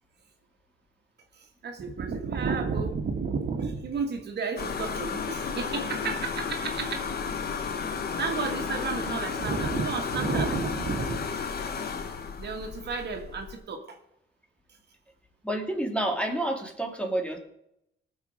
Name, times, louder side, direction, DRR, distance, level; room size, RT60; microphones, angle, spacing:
voice 1, 1.4-7.1 8.2-11.3 12.4-14.0, right 5 dB, 55° right, 3 dB, 2.1 m, -32 dB
sound 1, 4.6-13.5, left 6 dB, 50° left, 1.5 m, -33 dB
voice 2, 15.4-17.4, right 1 dB, 5° left, 3 dB, 2.4 m, -29 dB
18.5 x 6.8 x 5.1 m, 0.79 s
cardioid pair, 90°, 20 cm